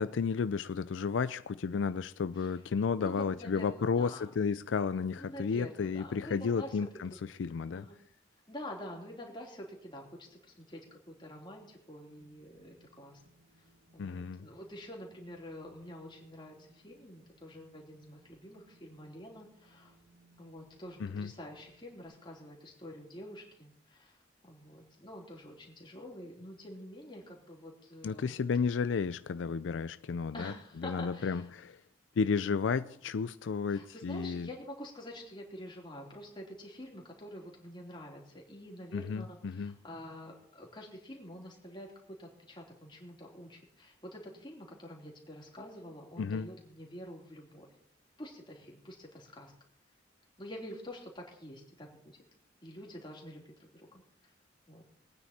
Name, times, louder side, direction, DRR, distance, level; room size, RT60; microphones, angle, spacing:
voice 1, 0.0-7.1 7.4-7.9 14.0-14.5 21.0-21.3 28.0-30.5 30.8-31.8 32.2-34.5 38.9-39.7 46.2-46.5, left 5 dB, 85° left, 0.4 m, -32 dB
voice 2, 3.0-4.3 5.2-7.2 7.7-8.0 8.5-13.2 13.9-19.9 20.4-24.2 24.4-28.4 30.3-31.5 32.5-33.0 33.7-41.9 42.2-47.7 48.2-49.5 50.4-51.9 52.6-54.3 54.7-54.8, left 1 dB, 25° left, 3.1 m, -47 dB
Wind, 12.1-22.1, right 1 dB, 60° right, 5.4 m, -66 dB
21.0 x 9.4 x 4.2 m
head